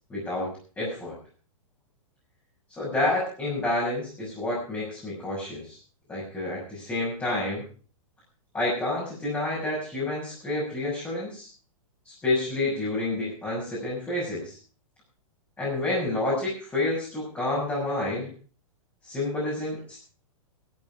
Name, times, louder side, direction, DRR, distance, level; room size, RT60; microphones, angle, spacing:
voice 1, 0.1-0.5 0.8-1.1 2.8-5.8 6.1-7.6 8.5-11.5 12.0-14.6 15.6-18.3 19.0-20.0, left 2 dB, 10° left, -6 dB, 6.6 m, -29 dB
15.5 x 13.0 x 4.8 m, 0.40 s
hypercardioid pair, 150°, 17 cm